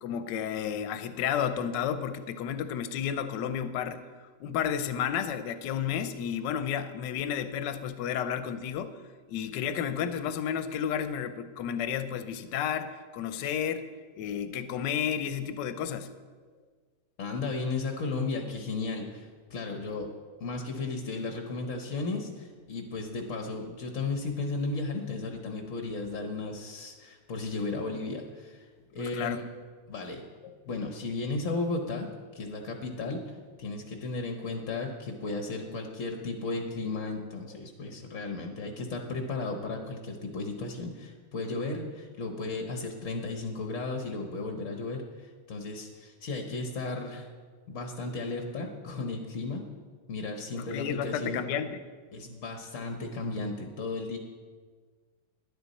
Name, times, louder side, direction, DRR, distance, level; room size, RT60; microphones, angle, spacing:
voice 1, 0.0-4.0 4.4-9.0 9.3-13.9 14.1-16.1 29.0-29.4 50.6-51.8, left 8 dB, 70° left, 10 dB, 1.2 m, -32 dB
voice 2, 17.2-20.1 20.4-29.5 29.9-30.3 30.7-47.3 47.7-49.6 50.1-51.4 52.1-54.2, left 3 dB, 50° left, 3 dB, 0.9 m, -35 dB
12.0 x 11.0 x 4.1 m, 1.5 s
omnidirectional pair, 2.3 m